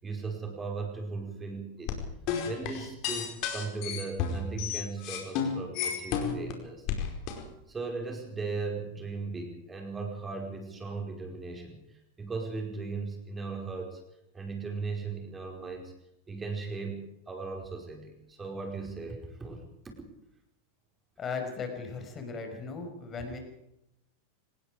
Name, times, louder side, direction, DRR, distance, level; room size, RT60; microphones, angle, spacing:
voice 1, 0.0-2.0 2.4-6.9 7.7-11.8 12.2-14.0 14.3-15.9 16.3-19.6 19.8-19.9, right 4 dB, 15° right, 2 dB, 4.9 m, -37 dB
sound 1, 1.9-6.5 6.9-7.4, left 7 dB, 40° left, 4.8 m, -31 dB
voice 2, 21.2-23.4, left 5 dB, 25° left, 5 dB, 5.4 m, -37 dB
25.5 x 20.0 x 5.1 m, 0.82 s
figure-of-eight pair, 90°, 0 cm